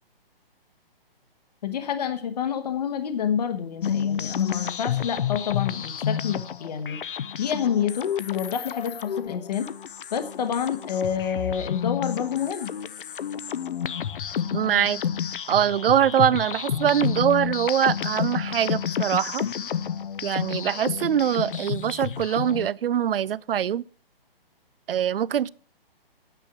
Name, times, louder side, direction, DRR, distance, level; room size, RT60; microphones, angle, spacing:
voice 1, 1.6-7.0 7.4-9.7 10.1-12.7, left 8 dB, 45° left, 1.1 m, -28 dB
sound 1, 3.8-22.7, left 8 dB, 60° left, 0.7 m, -30 dB
voice 2, 14.5-15.0 15.5-19.4 20.2-23.8 24.9-25.5, right 9 dB, 70° right, 0.5 m, -23 dB
9.2 x 8.4 x 5.9 m
hypercardioid pair, 165°, 30 cm